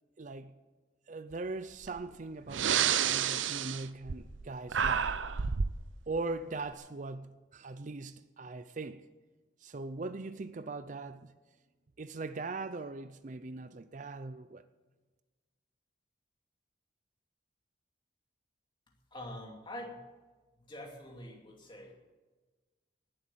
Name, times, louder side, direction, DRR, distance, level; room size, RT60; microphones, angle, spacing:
voice 1, 0.2-0.6 1.1-5.1 6.1-9.1 9.6-11.3 12.0-14.6, right 3 dB, 40° right, 0.5 m, -40 dB
Breathing, 1.8-2.0 2.5-4.4 4.7-5.8, right 8 dB, 85° right, 0.6 m, -30 dB
voice 2, 19.1-20.0 20.7-21.9, left 1 dB, 25° left, 2.6 m, -45 dB
19.0 x 7.8 x 7.4 m
head